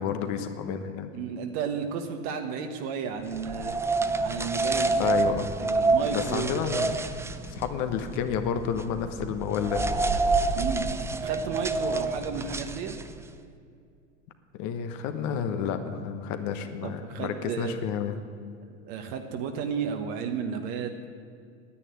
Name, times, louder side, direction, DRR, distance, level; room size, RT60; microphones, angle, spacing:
voice 1, 0.0-1.1 5.0-5.5 6.1-6.9 7.5-9.8 14.5-18.2, left 8 dB, 50° left, 8 dB, 1.2 m, -30 dB
voice 2, 1.1-3.7 4.2-5.2 5.6-6.6 10.5-10.9 11.2-12.9 16.8-17.8 18.8-21.0, right 6 dB, 55° right, 5 dB, 1.4 m, -33 dB
sound 1, 3.3-13.3, right 3 dB, 5° right, 0.4 m, -28 dB
10.0 x 9.1 x 9.9 m, 2.3 s
hypercardioid pair, 110°, 37 cm